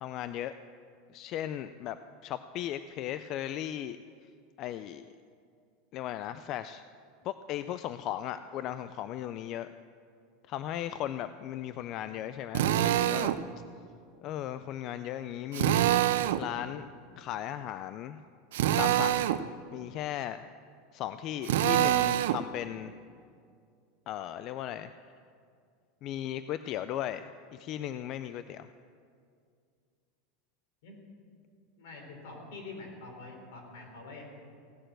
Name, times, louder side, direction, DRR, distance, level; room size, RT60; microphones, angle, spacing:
voice 1, 0.0-0.5 1.1-4.0 4.6-5.1 5.9-6.8 7.2-9.7 10.5-13.3 14.2-16.1 16.4-16.9 17.2-18.2 18.8-19.3 19.7-20.5 20.9-22.9 24.1-24.9 26.0-28.7, left 11 dB, 40° left, 12 dB, 0.3 m, -37 dB
Drill, 12.5-13.4 15.5-16.4 18.5-19.4 21.4-22.4, right 12 dB, 85° right, 0.5 m, -25 dB
voice 2, 31.8-34.2, left 3 dB, 75° left, 1 dB, 3.8 m, -45 dB
16.5 x 6.7 x 7.7 m, 2.3 s
supercardioid pair, 155°, 0 cm